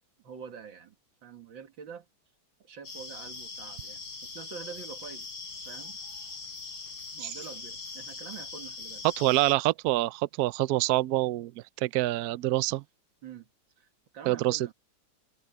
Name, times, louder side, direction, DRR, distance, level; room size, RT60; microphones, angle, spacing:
voice 1, 0.2-1.0 1.2-2.1 2.6-5.4 5.7-6.0 7.1-9.0 13.2-13.5 13.8-13.9 14.1-14.7, right 7 dB, 70° right, 2.6 m, -45 dB
sound 1, 2.8-9.5, left 4 dB, 80° left, 4.5 m, -41 dB
voice 2, 9.2-11.5 11.8-12.8 14.3-14.7, right 17 dB, 85° right, 0.8 m, -26 dB
omnidirectional pair, 2.2 m